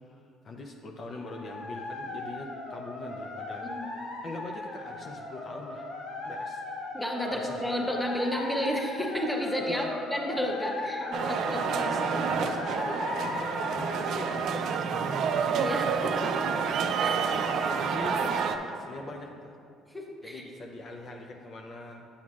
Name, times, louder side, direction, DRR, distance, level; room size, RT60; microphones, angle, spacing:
voice 1, 0.0-3.7 4.0-5.9 6.2-6.6 7.3-7.6 9.6-9.9 11.0-15.5 16.5-16.7 17.1-19.6 20.2-22.1, left 2 dB, 45° left, 1 dB, 0.5 m, -42 dB
sound 1, 1.2-14.4, left 2 dB, 65° left, 0.9 m, -37 dB
voice 2, 6.9-9.8 10.1-11.9 15.5-16.6 16.8-17.2 19.9-20.4, equal, 5° left, 0 dB, 0.9 m, -32 dB
sound 2, 11.1-18.6, right 6 dB, 65° right, 0.4 m, -29 dB
8.5 x 7.6 x 2.4 m, 2.5 s
cardioid pair, 90°, 0 cm